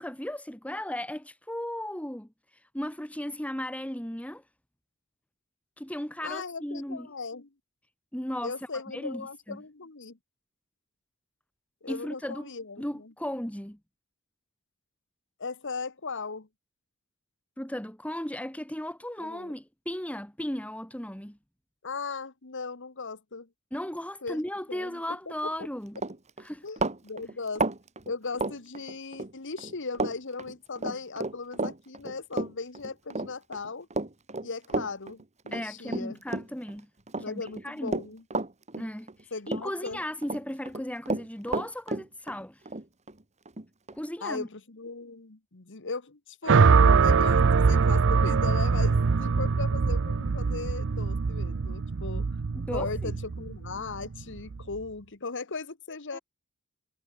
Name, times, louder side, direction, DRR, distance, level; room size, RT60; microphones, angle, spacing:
voice 1, 0.0-4.4 5.8-7.1 8.1-8.5 8.9-9.6 11.9-12.5 12.8-13.8 17.6-21.4 23.7-26.0 26.4-26.6 35.5-36.9 37.2-38.0 38.8-42.6 43.9-44.5 52.5-53.1 56.1-56.2, left 1 dB, 5° left, 2.3 m, -36 dB
voice 2, 6.2-7.5 8.4-10.2 11.8-13.1 15.4-16.5 19.2-19.5 21.8-23.5 24.2-25.2 26.6-27.7 28.0-33.9 34.4-36.2 37.1-38.2 39.3-40.0 44.2-52.3 52.7-56.2, left 4 dB, 60° left, 1.5 m, -37 dB
Run, 25.5-25.7 26.0-29.3 29.6-30.1 30.4-36.7 37.1-39.2 39.5-40.4 40.7-44.0, right 3 dB, 30° right, 2.2 m, -32 dB
sound 1, 46.5-54.7, right 5 dB, 60° right, 0.6 m, -23 dB
head